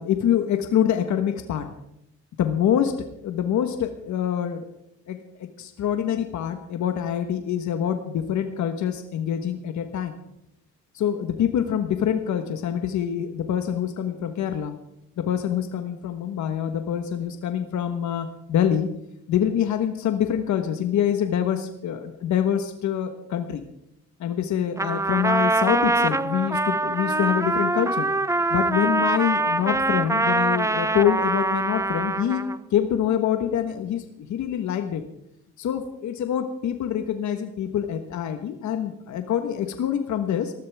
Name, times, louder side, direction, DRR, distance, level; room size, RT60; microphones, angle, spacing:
voice 1, 0.0-1.7 2.4-2.9 3.2-4.6 5.1-10.1 10.9-14.7 15.2-18.9 19.3-23.6 24.2-28.1 28.5-32.4 32.7-35.0 35.6-40.5, left 9 dB, 70° left, 7 dB, 1.3 m, -25 dB
Trumpet, 24.8-32.6, right 2 dB, 10° right, 0.6 m, -24 dB
20.0 x 13.5 x 3.5 m, 0.80 s
cardioid pair, 90°, 30 cm